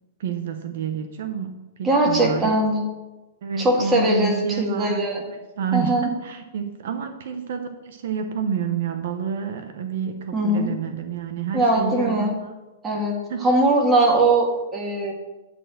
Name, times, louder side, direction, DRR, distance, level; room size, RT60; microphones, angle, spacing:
voice 1, 0.2-2.6 3.4-12.5 13.3-13.5, right 7 dB, 65° right, 7 dB, 1.0 m, -29 dB
voice 2, 1.8-2.8 3.6-5.2 5.7-6.1 10.3-10.7 11.5-12.3 12.8-15.1, right 1 dB, 15° right, -1 dB, 2.0 m, -21 dB
11.0 x 4.4 x 7.8 m, 1.1 s
hypercardioid pair, 160°, 0 cm